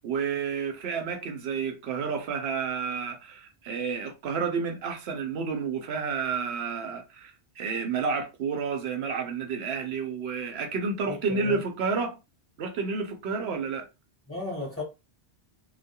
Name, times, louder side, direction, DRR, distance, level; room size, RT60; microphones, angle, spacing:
voice 1, 0.0-12.2 12.6-13.9, right 5 dB, 75° right, 0.8 m, -30 dB
voice 2, 11.1-11.6 14.3-14.8, left 2 dB, 15° left, 1.1 m, -35 dB
2.2 x 2.2 x 2.7 m
omnidirectional pair, 1.1 m